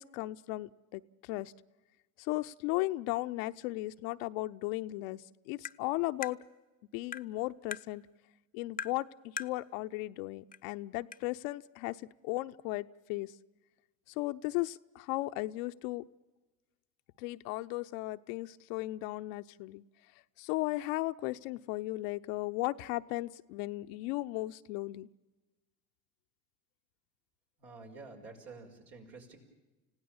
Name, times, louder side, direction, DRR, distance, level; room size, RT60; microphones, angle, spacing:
voice 1, 0.0-1.5 2.2-6.4 6.9-8.0 8.5-12.0 12.2-13.3 14.2-16.1 17.2-19.8 20.4-25.1, left 19 dB, 70° left, 11 dB, 0.7 m, -36 dB
Tap, 5.6-5.8 6.2-6.4 7.1-7.3 7.7-7.9 8.8-9.0 9.4-9.6 10.5-10.6 11.1-11.2, left 6 dB, 20° left, 0.6 m, -39 dB
voice 2, 27.6-29.4, right 3 dB, 70° right, 1 dB, 5.2 m, -49 dB
30.0 x 16.5 x 7.2 m, 1.1 s
hypercardioid pair, 60°, 42 cm